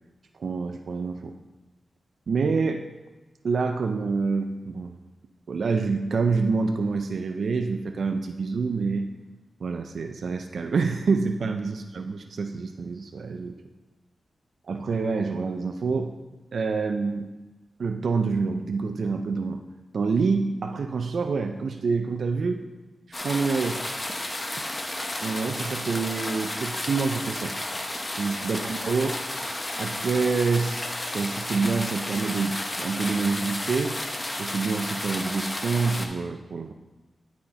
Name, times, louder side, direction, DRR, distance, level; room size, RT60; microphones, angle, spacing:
voice 1, 0.4-1.3 2.3-2.9 3.4-5.0 5.5-9.1 9.6-13.6 14.7-16.1 16.5-17.3 17.8-19.6 19.9-22.6 23.2-23.8 25.2-27.6 28.1-29.2 29.8-34.0 34.4-36.7, right 4 dB, 75° right, 6 dB, 0.4 m, -27 dB
sound 1, 23.1-36.1, left 1 dB, 30° left, 1.0 m, -32 dB
11.0 x 4.2 x 4.3 m, 1.1 s
cardioid pair, 60°, 0 cm